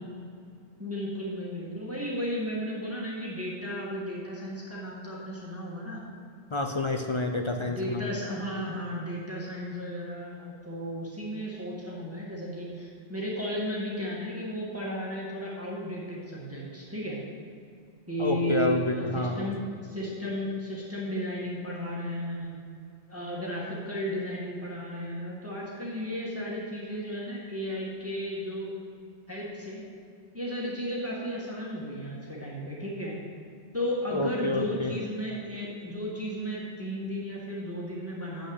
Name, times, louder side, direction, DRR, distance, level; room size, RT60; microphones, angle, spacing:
voice 1, 0.8-6.0 7.7-17.2 18.1-22.6 23.1-28.7 29.3-29.8 30.3-33.1 33.7-38.5, equal, 10° right, -5 dB, 1.8 m, -34 dB
voice 2, 6.5-8.1 18.2-19.5 34.1-34.9, left 2 dB, 35° left, 4 dB, 0.5 m, -29 dB
7.8 x 6.5 x 7.9 m, 2.4 s
omnidirectional pair, 1.2 m